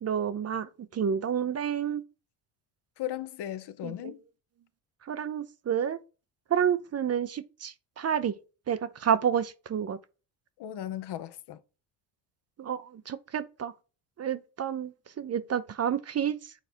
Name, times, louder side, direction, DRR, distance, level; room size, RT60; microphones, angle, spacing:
voice 1, 0.0-2.0 3.8-4.1 5.1-6.0 6.5-8.4 8.7-10.0 12.6-13.7 14.2-16.5, right 8 dB, 35° right, 0.6 m, -30 dB
voice 2, 3.0-4.2 10.6-11.6, left 12 dB, 60° left, 0.9 m, -36 dB
7.5 x 4.1 x 4.4 m
supercardioid pair, 70°, 47 cm